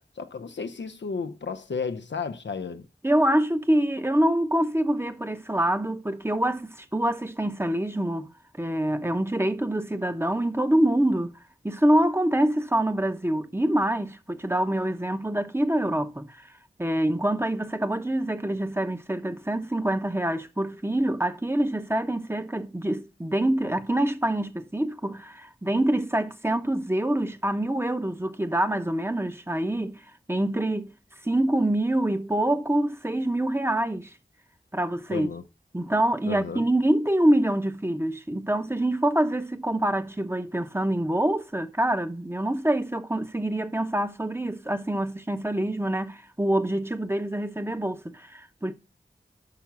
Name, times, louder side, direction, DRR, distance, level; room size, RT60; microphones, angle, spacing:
voice 1, 0.0-2.9 35.1-35.4 36.3-36.6, left 5 dB, 80° left, 0.6 m, -33 dB
voice 2, 3.0-11.4 11.6-16.4 16.8-30.0 30.3-30.9 31.2-34.1 34.7-35.3 35.7-48.7, right 1 dB, 15° right, 0.8 m, -25 dB
5.8 x 5.8 x 6.0 m
wide cardioid pair, 50°, 18 cm